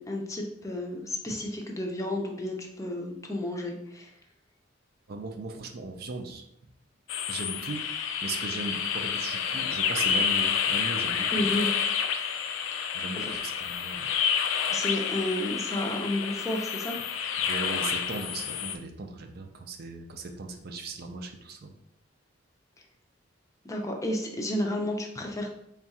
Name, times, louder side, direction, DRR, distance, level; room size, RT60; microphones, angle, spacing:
voice 1, 0.0-4.1 11.3-11.7 13.2-13.3 14.7-17.0 23.6-25.5, left 1 dB, 15° left, 1 dB, 0.5 m, -31 dB
voice 2, 5.1-6.4 7.3-7.8 8.2-11.3 12.9-14.1 17.4-21.7, right 3 dB, 55° right, 5 dB, 0.5 m, -37 dB
sound 1, 7.1-18.8, left 7 dB, 80° left, 0.3 m, -29 dB
3.5 x 2.4 x 4.2 m, 0.75 s
head